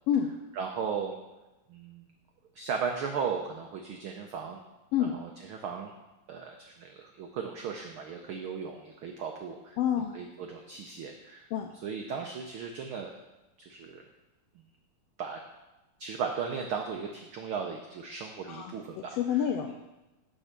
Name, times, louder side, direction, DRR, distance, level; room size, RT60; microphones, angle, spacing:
voice 1, 0.5-1.2 1.7-2.1 2.5-4.6 5.0-5.9 6.3-9.8 10.1-13.1 13.6-14.0 15.2-15.4 16.0-19.2, right 6 dB, 85° right, 3 dB, 1.1 m, -36 dB
voice 2, 9.8-10.2 11.5-11.7 18.4-19.8, left 9 dB, 85° left, 4 dB, 1.4 m, -28 dB
8.8 x 4.8 x 6.7 m, 1.0 s
omnidirectional pair, 3.3 m